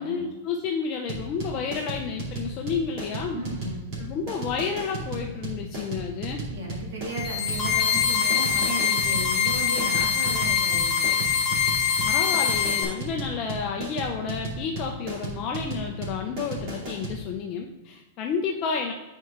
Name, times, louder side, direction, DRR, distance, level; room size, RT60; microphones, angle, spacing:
voice 1, 0.0-3.4 4.0-6.4 12.0-18.9, left 6 dB, 30° left, 2 dB, 0.5 m, -31 dB
sound 1, 1.1-17.2, right 3 dB, 35° right, 2.5 m, -34 dB
voice 2, 3.3-3.9 6.4-11.3, right 1 dB, 80° right, -2 dB, 2.2 m, -35 dB
sound 2, 7.1-12.8, left 7 dB, ahead, 1.5 m, -24 dB
9.2 x 4.6 x 3.6 m, 1.1 s
supercardioid pair, 170°, 0 cm